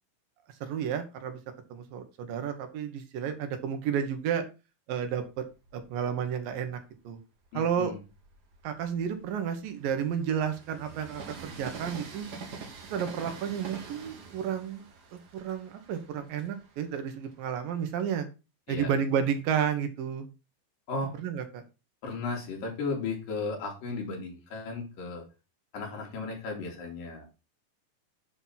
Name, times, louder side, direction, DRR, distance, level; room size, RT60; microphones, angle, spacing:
voice 1, 0.6-1.4 1.7-4.4 4.9-5.4 5.7-6.8 7.0-7.2 7.5-7.9 8.6-12.3 12.9-14.9 15.1-18.3 18.7-20.3 21.2-21.6, right 8 dB, 90° right, 7 dB, 3.1 m, -31 dB
Train, 5.0-6.7 7.3-17.9, right 4 dB, 65° right, 1.0 m, -46 dB
voice 2, 7.5-8.0 18.7-18.9 20.9-21.1 22.0-25.2 25.7-27.3, left 3 dB, 85° left, 0 dB, 4.4 m, -35 dB
9.9 x 4.2 x 5.8 m, 0.30 s
omnidirectional pair, 3.9 m